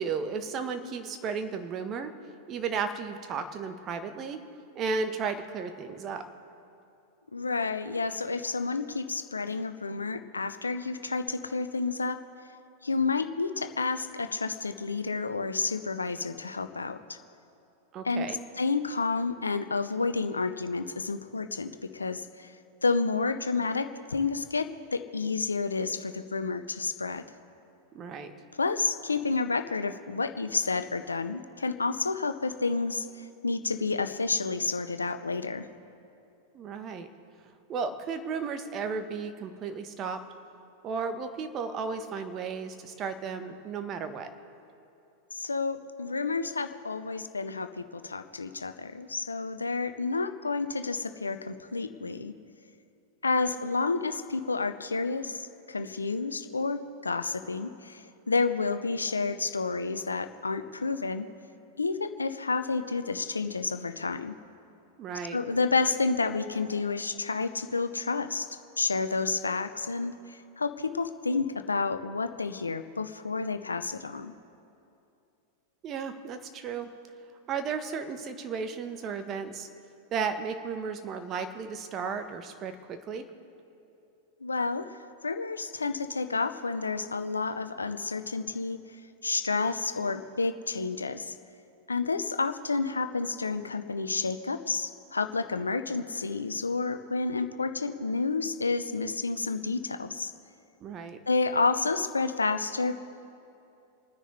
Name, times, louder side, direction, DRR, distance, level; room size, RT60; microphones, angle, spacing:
voice 1, 0.0-2.1 2.5-4.4 4.7-6.2 17.9-18.4 27.9-28.3 36.5-37.1 37.7-40.2 40.8-44.3 65.0-65.4 75.8-76.9 77.5-79.7 80.1-83.2 100.8-101.2, right 5 dB, 35° right, 8 dB, 1.2 m, -34 dB
voice 2, 7.3-12.2 12.8-17.2 18.0-18.3 18.6-22.5 22.8-27.2 28.6-35.7 45.3-52.3 53.2-61.3 61.8-64.3 65.3-68.5 68.8-74.3 84.4-85.0 85.2-88.8 89.2-91.3 91.9-100.3 101.3-102.9, left 4 dB, 85° left, 10 dB, 0.7 m, -30 dB
29.5 x 10.0 x 3.3 m, 2.7 s
figure-of-eight pair, 95°, 0 cm